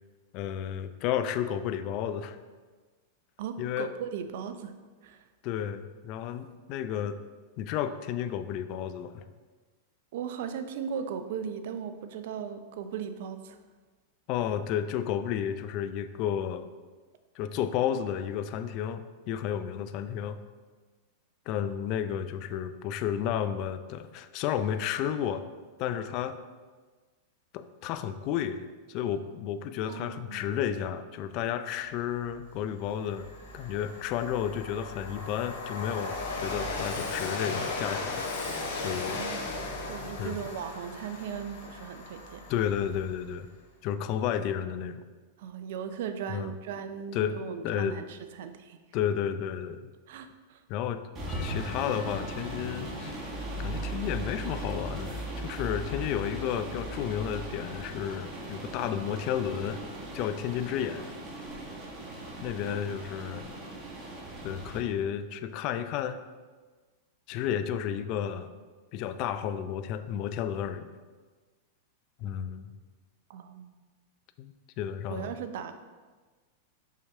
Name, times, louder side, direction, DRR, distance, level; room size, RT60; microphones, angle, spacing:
voice 1, 0.3-2.4 3.6-3.9 5.4-7.2 7.6-9.2 14.3-16.6 17.3-20.4 21.5-25.4 25.8-26.4 27.5-33.3 33.5-38.2 38.7-39.2 40.2-40.4 42.5-43.5 43.8-45.0 46.3-46.5 47.1-47.4 47.6-48.0 48.9-49.9 50.7-51.0 51.4-53.2 53.6-59.8 60.1-61.1 62.4-63.5 64.4-66.2 67.3-68.5 68.9-70.9 72.2-72.7 74.4-75.3, left 9 dB, 50° left, 11 dB, 0.5 m, -32 dB
voice 2, 3.4-4.7 5.0-5.2 10.1-13.6 29.9-30.5 39.0-42.4 45.4-48.8 50.1-50.6 62.7-62.8 73.3-73.8 75.1-75.7, right 7 dB, 65° right, 9 dB, 0.6 m, -38 dB
Train, 32.3-32.4 32.8-43.2, left 3 dB, 65° left, 1.5 m, -36 dB
sound 1, 51.1-64.8, right 1 dB, 30° right, 1.9 m, -38 dB
Percussion / Church bell, 51.3-54.9, left 1 dB, 20° left, 1.0 m, -50 dB
6.2 x 5.6 x 3.6 m, 1.3 s
hypercardioid pair, 110°, 0 cm